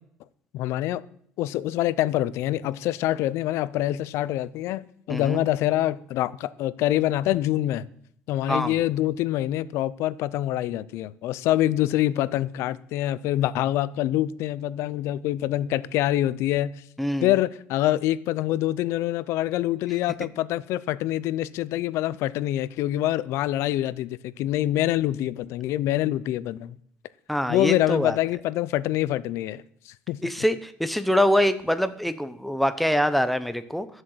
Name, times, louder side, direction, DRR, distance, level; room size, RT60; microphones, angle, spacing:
voice 1, 0.5-1.0 1.4-7.9 8.3-16.7 17.2-26.8 27.5-30.5, left 14 dB, 75° left, 0.6 m, -25 dB
voice 2, 17.0-17.3 27.3-28.2 30.2-33.9, equal, ahead, 0.8 m, -24 dB
12.5 x 7.7 x 7.9 m
cardioid pair, 150°, 5 cm